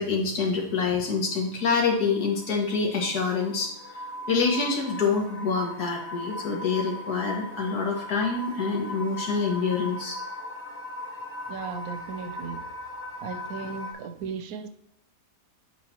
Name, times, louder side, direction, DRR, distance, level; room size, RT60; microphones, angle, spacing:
voice 1, 0.0-10.2, left 4 dB, 85° left, 2.0 m, -26 dB
sound 1, 0.8-13.9, left 1 dB, 15° left, 0.5 m, -39 dB
voice 2, 11.5-12.7 13.2-14.7, right 5 dB, 75° right, 1.1 m, -36 dB
8.3 x 4.7 x 2.9 m
omnidirectional pair, 1.6 m